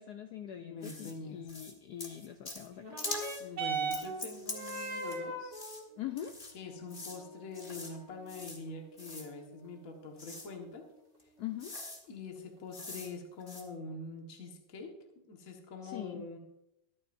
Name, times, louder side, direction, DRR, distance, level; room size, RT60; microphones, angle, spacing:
voice 1, 0.0-3.5 6.0-6.4 11.4-11.8 15.8-16.3, left 11 dB, 85° left, 7 dB, 0.8 m, -43 dB
voice 2, 0.6-1.4 3.4-5.6 6.5-10.9 12.1-15.0 15.3-16.4, left 3 dB, 40° left, 2 dB, 1.8 m, -44 dB
sound 1, 0.8-1.1 1.5-1.7 2.0-2.7 3.0-3.4 3.9-5.2 5.5-5.8 6.2-6.5 6.9-7.2 7.5-7.9 8.3-8.6 9.0-9.3 10.2-10.5 11.2-11.3 11.6-12.0 12.7-13.1 13.4-13.6, left 2 dB, 25° left, 1.7 m, -43 dB
sound 2, 2.8-11.7 12.6-12.7, right 3 dB, 35° right, 2.2 m, -42 dB
22.5 x 8.6 x 2.6 m, 0.82 s
omnidirectional pair, 2.4 m